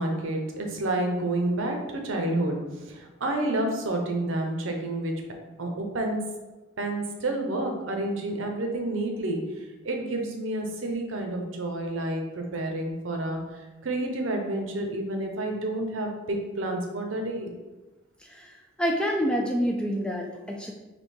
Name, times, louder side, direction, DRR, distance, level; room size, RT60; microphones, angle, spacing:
voice 1, 0.0-2.6 2.9-5.1 5.6-6.2 6.8-17.5, right 1 dB, 75° right, 2 dB, 0.7 m, -29 dB
voice 2, 18.2-20.7, equal, 5° left, 1 dB, 0.3 m, -28 dB
3.4 x 2.8 x 4.3 m, 1.1 s
head